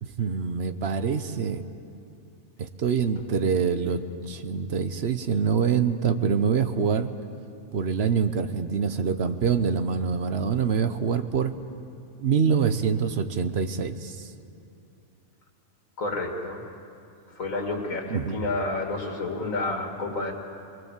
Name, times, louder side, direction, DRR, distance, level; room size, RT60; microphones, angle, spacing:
voice 1, 0.0-1.6 2.6-7.1 7.7-11.5 12.2-14.2 18.1-18.5, right 6 dB, 55° right, 10 dB, 1.1 m, -25 dB
voice 2, 16.0-16.6 17.4-20.3, left 2 dB, 85° left, 2 dB, 2.8 m, -30 dB
22.5 x 22.0 x 7.4 m, 2.6 s
omnidirectional pair, 1.4 m